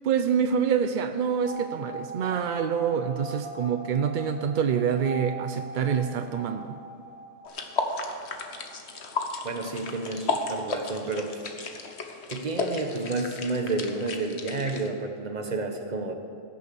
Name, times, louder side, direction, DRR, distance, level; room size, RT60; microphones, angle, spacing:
voice 1, 0.0-6.7, right 7 dB, 60° right, 8 dB, 0.5 m, -26 dB
sound 1, 1.4-9.9 10.2-10.3 10.5-10.6, right 2 dB, 85° right, 2.0 m, -41 dB
sound 2, 7.4-14.9, left 3 dB, 55° left, 1.3 m, -34 dB
voice 2, 9.4-11.4 12.3-16.1, right 3 dB, 35° right, 4 dB, 1.1 m, -30 dB
16.0 x 6.9 x 6.9 m, 2.5 s
omnidirectional pair, 1.4 m